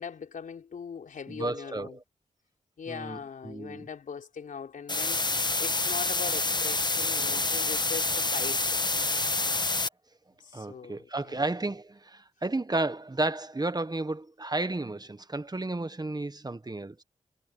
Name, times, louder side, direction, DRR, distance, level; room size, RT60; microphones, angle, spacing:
voice 1, 0.0-2.0 2.8-5.2 5.6-8.9 10.4-11.4, left 6 dB, 85° left, 4.7 m, -40 dB
voice 2, 1.3-2.0 2.9-3.9 9.1-9.3 10.5-17.0, right 2 dB, 30° right, 1.3 m, -33 dB
sound 1, 4.9-9.9, left 3 dB, 35° left, 1.2 m, -27 dB
cardioid pair, 40°, 13 cm